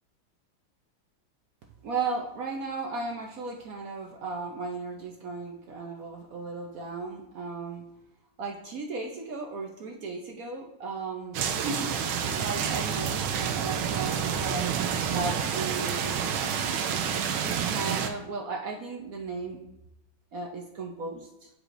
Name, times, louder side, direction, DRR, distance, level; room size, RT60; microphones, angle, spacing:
voice 1, 1.8-7.8 8.4-11.9 12.4-14.8 15.1-16.4 17.4-19.6 20.3-21.5, right 3 dB, 65° right, 0 dB, 0.9 m, -35 dB
sound 1, 11.3-18.1, right 7 dB, 85° right, 1.5 m, -29 dB
11.0 x 4.8 x 2.5 m, 0.87 s
omnidirectional pair, 2.2 m